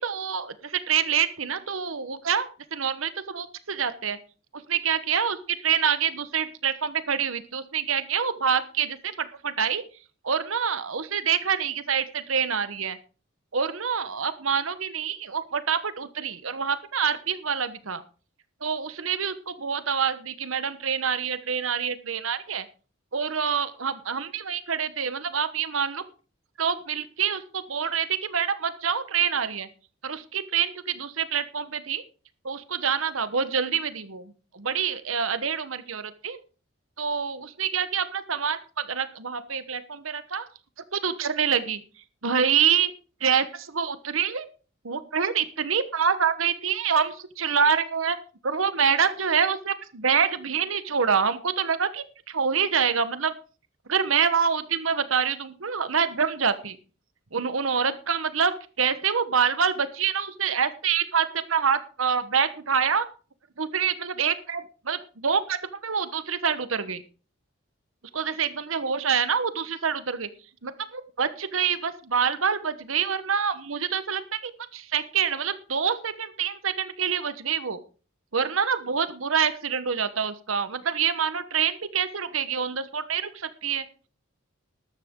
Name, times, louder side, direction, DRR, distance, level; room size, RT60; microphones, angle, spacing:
voice 1, 0.0-4.2 4.5-9.8 10.2-13.0 13.5-18.0 18.6-22.6 23.1-26.0 26.6-29.7 30.0-32.0 32.4-36.4 37.0-40.5 40.9-41.8 42.2-42.9 43.2-44.5 44.8-48.2 48.4-53.3 53.9-56.8 57.3-63.1 63.6-65.6 65.8-67.0 68.1-70.3 70.6-77.8 78.3-83.9, right 7 dB, 85° right, 13 dB, 1.2 m, -26 dB
13.5 x 12.0 x 3.7 m, 0.36 s
head